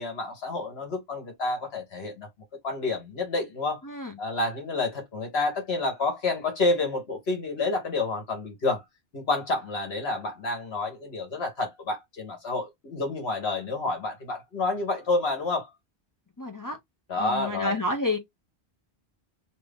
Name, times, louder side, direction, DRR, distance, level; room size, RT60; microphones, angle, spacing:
voice 1, 0.0-2.3 2.6-3.8 4.2-8.8 9.1-15.7 17.1-17.8, left 3 dB, 70° left, 1.4 m, -29 dB
voice 2, 16.4-16.8 17.2-18.2, left 2 dB, 25° left, 0.5 m, -29 dB
2.9 x 2.7 x 3.3 m
omnidirectional pair, 1.1 m